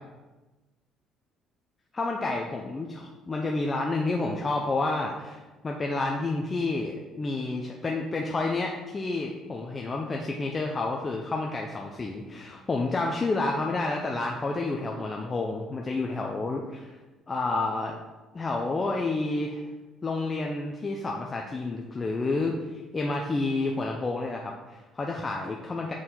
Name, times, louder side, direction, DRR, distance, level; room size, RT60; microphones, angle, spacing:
voice 1, 1.9-16.9 17.3-18.0 18.3-19.7 20.0-22.6 22.9-25.9, left 3 dB, 25° left, 0 dB, 0.5 m, -30 dB
6.2 x 4.3 x 3.7 m, 1.2 s
cardioid pair, 95°, 0 cm